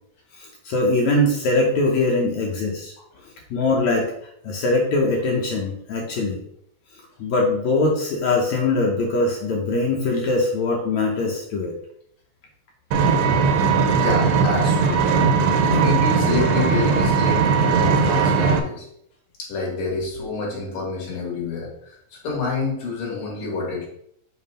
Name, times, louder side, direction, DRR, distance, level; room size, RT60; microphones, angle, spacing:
voice 1, 0.4-2.9 3.5-4.1 4.4-6.4 7.2-11.7, left 2 dB, 80° left, -1 dB, 1.6 m, -22 dB
Vehicle, 12.9-18.6, right 5 dB, 80° right, 2.5 m, -18 dB
voice 2, 13.9-15.1 15.6-18.9 19.4-23.9, left 4 dB, 60° left, -3 dB, 3.2 m, -28 dB
7.2 x 2.8 x 5.4 m, 0.71 s
omnidirectional pair, 4.5 m